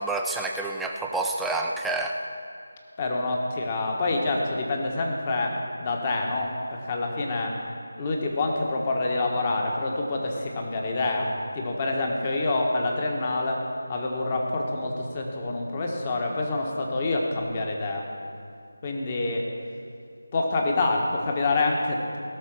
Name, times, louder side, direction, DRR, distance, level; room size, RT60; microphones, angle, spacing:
voice 1, 0.0-2.2, right 2 dB, 5° right, 0 dB, 0.5 m, -28 dB
voice 2, 3.0-7.6 8.0-18.1 18.8-19.5 20.3-22.2, left 2 dB, 25° left, 1 dB, 1.3 m, -27 dB
17.5 x 6.4 x 6.2 m, 2.3 s
figure-of-eight pair, 160°, 0 cm